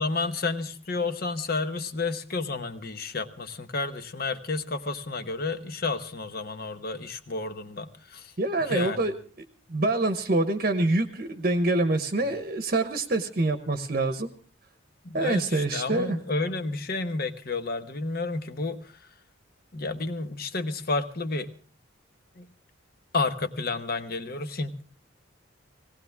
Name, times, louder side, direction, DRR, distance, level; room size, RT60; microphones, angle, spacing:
voice 1, 0.0-8.3 8.6-9.0 12.2-12.3 15.0-19.1 19.7-21.5 22.3-22.5 23.1-24.8, left 3 dB, 50° left, 10 dB, 1.0 m, -31 dB
voice 2, 8.4-9.1 9.7-14.3 15.1-16.2, right 2 dB, 45° right, 8 dB, 1.0 m, -25 dB
18.5 x 18.0 x 3.5 m, 0.41 s
head